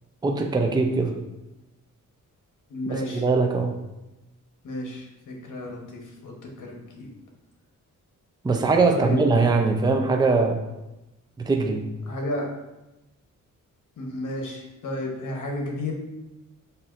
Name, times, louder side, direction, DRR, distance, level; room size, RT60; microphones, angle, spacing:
voice 1, 0.2-1.1 2.9-3.8 8.4-10.6 11.4-11.9, right 3 dB, 15° right, 3 dB, 0.4 m, -22 dB
voice 2, 2.7-3.2 4.6-7.1 8.9-9.2 12.1-12.5 14.0-15.9, left 1 dB, 65° left, 0 dB, 1.1 m, -32 dB
5.5 x 2.7 x 2.5 m, 0.99 s
cardioid pair, 75°, 33 cm